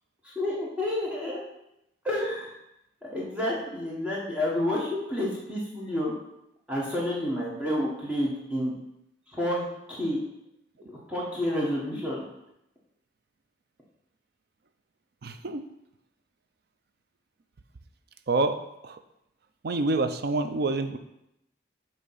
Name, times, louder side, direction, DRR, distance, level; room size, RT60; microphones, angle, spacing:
voice 1, 0.2-1.4 2.0-2.5 3.0-6.1 6.7-8.7 9.3-10.2 10.8-12.2, left 1 dB, 5° right, -5 dB, 1.1 m, -29 dB
voice 2, 15.2-15.6 18.3-18.6 18.8-19.0 19.6-21.0, right 3 dB, 60° right, 9 dB, 0.5 m, -27 dB
8.1 x 2.9 x 5.6 m, 0.84 s
head